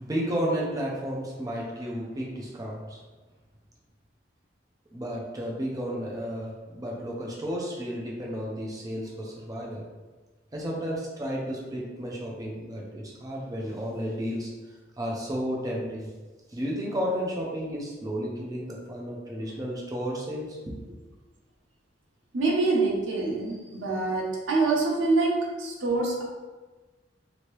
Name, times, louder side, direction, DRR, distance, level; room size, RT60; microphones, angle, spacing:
voice 1, 0.0-3.0 4.9-9.8 10.5-16.1 16.5-20.8, equal, 20° right, -3 dB, 0.5 m, -32 dB
voice 2, 22.3-26.2, right 3 dB, 90° right, -3 dB, 0.8 m, -25 dB
2.9 x 2.7 x 3.1 m, 1.3 s
head